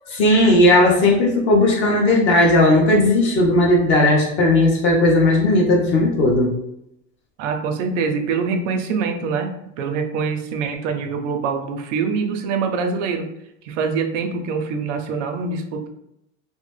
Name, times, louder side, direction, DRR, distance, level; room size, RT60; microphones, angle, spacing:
voice 1, 0.1-6.6, left 1 dB, 30° left, -1 dB, 0.7 m, -16 dB
voice 2, 7.4-13.3 13.6-15.9, right 5 dB, 90° right, 5 dB, 0.6 m, -24 dB
2.9 x 2.0 x 3.3 m, 0.81 s
cardioid pair, 175°, 36 cm